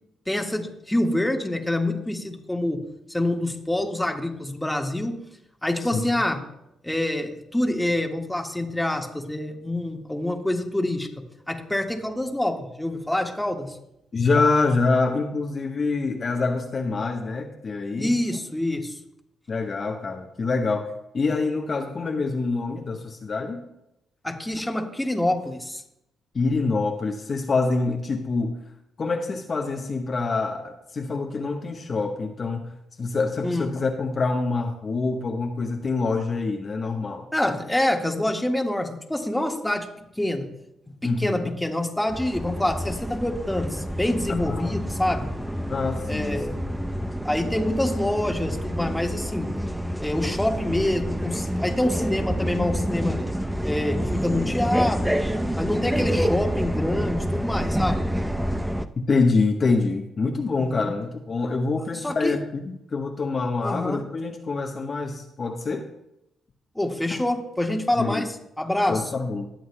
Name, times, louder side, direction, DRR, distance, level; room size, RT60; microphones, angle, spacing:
voice 1, 0.3-2.8 3.1-5.2 5.6-6.4 6.8-13.8 18.0-19.0 24.2-25.8 33.4-33.7 37.3-39.9 40.2-40.5 40.9-45.4 46.1-46.6 47.2-49.6 50.0-53.2 53.6-55.2 55.6-58.0 60.6-60.9 62.0-62.4 63.6-64.0 66.7-69.0, left 1 dB, 10° left, 3 dB, 1.5 m, -26 dB
voice 2, 14.1-18.1 19.5-23.6 26.3-28.5 29.0-32.7 33.0-37.3 41.0-41.5 44.3-44.8 45.7-46.4 59.0-65.8 67.1-67.2 68.0-68.3 68.9-69.5, left 3 dB, 45° left, 3 dB, 1.0 m, -26 dB
sound 1, 42.1-58.8, equal, 5° right, 0.7 m, -28 dB
20.5 x 7.8 x 2.2 m, 0.85 s
supercardioid pair, 50°, 0 cm